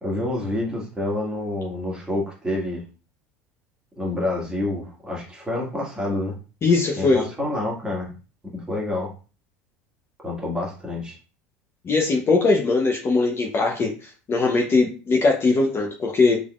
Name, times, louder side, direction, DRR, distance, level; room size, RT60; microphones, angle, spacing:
voice 1, 0.0-2.8 4.0-6.4 7.0-8.1 8.4-9.1 10.2-11.2, left 2 dB, 10° right, -2 dB, 1.7 m, -28 dB
voice 2, 6.6-7.3 11.8-16.4, left 3 dB, 35° left, 0 dB, 0.9 m, -20 dB
3.6 x 3.5 x 2.4 m, 0.34 s
hypercardioid pair, 95°, 8 cm